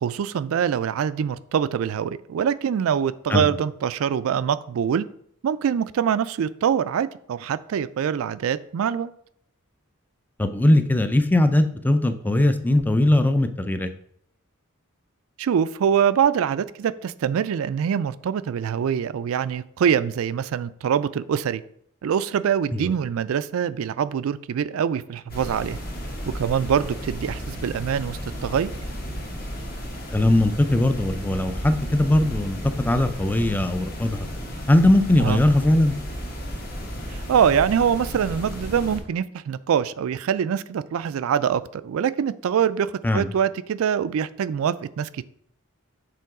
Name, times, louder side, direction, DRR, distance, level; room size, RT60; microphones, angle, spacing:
voice 1, 0.0-5.1 5.4-9.1 15.4-21.6 22.0-25.8 26.3-28.7 35.2-35.4 37.1-45.2, right 8 dB, 70° right, 15 dB, 0.3 m, -24 dB
voice 2, 10.4-13.9 22.7-22.9 30.1-34.3 34.7-36.0 43.0-43.3, left 1 dB, 10° left, 9 dB, 0.4 m, -20 dB
sound 1, 25.3-39.0, equal, 45° left, 1.3 m, -33 dB
6.8 x 3.8 x 4.8 m, 0.67 s
head